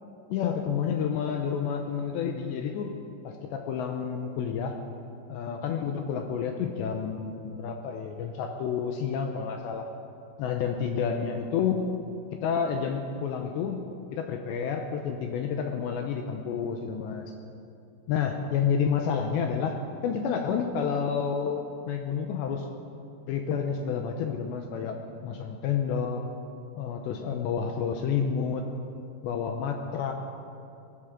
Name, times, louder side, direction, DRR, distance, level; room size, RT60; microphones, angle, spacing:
voice 1, 0.3-2.9 3.2-4.7 5.3-9.9 10.4-11.9 12.4-13.9 14.1-17.3 18.1-19.8 20.0-22.7 23.3-25.0 25.2-26.2 26.8-28.7 29.2-30.1, left 7 dB, 80° left, 4 dB, 2.7 m, -29 dB
18.5 x 13.5 x 5.0 m, 2.7 s
omnidirectional pair, 5.7 m